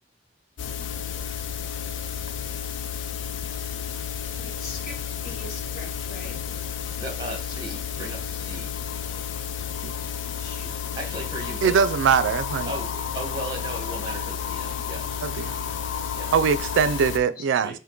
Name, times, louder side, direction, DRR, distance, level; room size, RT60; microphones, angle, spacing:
sound 1, 0.6-17.2, left 7 dB, 85° left, 0.4 m, -31 dB
voice 1, 4.4-6.4 10.2-10.7 17.4-17.5, left 2 dB, 55° left, 1.0 m, -42 dB
voice 2, 7.0-8.8 10.9-11.9 12.2-12.3 12.6-15.7 16.1-16.3 17.6-17.8, right 1 dB, 25° right, 1.1 m, -37 dB
voice 3, 11.6-12.7 15.2-15.5 16.3-17.7, right 6 dB, 90° right, 0.3 m, -22 dB
3.7 x 2.6 x 3.7 m
head